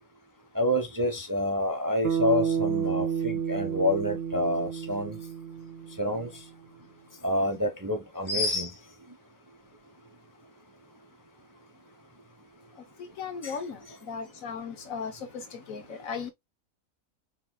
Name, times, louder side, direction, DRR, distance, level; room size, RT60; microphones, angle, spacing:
voice 1, 0.5-5.2 6.0-6.3 7.2-8.7 13.4-13.6, left 1 dB, 20° right, 0.6 m, -28 dB
Bass guitar, 2.0-6.4, right 7 dB, 60° right, 0.8 m, -30 dB
voice 2, 13.2-13.8 14.1-15.1 15.7-16.3, left 6 dB, 70° left, 1.4 m, -36 dB
6.1 x 3.2 x 2.2 m
omnidirectional pair, 1.5 m